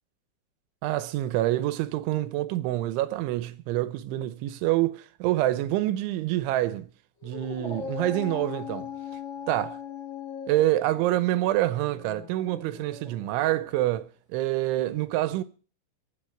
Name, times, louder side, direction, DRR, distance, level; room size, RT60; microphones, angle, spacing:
voice 1, 0.8-6.9 7.2-8.9 9.5-9.8 10.5-15.4, right 15 dB, 85° right, 3.2 m, -26 dB
Dog, 7.2-13.8, left 6 dB, 30° left, 3.5 m, -40 dB
23.5 x 7.9 x 4.7 m
omnidirectional pair, 5.5 m